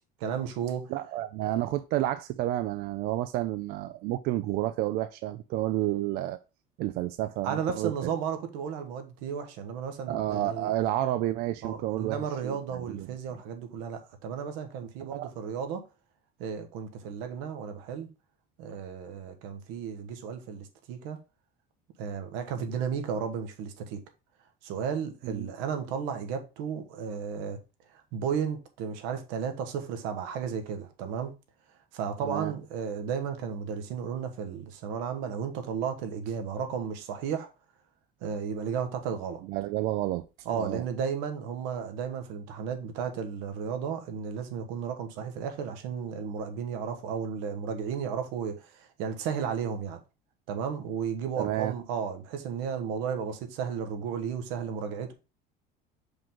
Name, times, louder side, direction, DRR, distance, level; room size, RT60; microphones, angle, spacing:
voice 1, 0.2-0.9 7.4-10.7 11.6-15.8 16.4-18.1 18.6-21.2 22.0-24.0 24.6-27.6 27.9-31.3 31.9-37.5 38.2-39.4 40.4-50.0 50.5-55.1, right 7 dB, 80° right, 1.4 m, -34 dB
voice 2, 0.9-6.4 6.8-8.1 10.1-13.1 15.1-15.3 25.2-25.5 32.2-32.5 39.5-40.3 40.5-40.8 51.4-51.7, right 14 dB, 50° right, 0.4 m, -30 dB
6.0 x 5.2 x 3.7 m
cardioid pair, 175°, 19 cm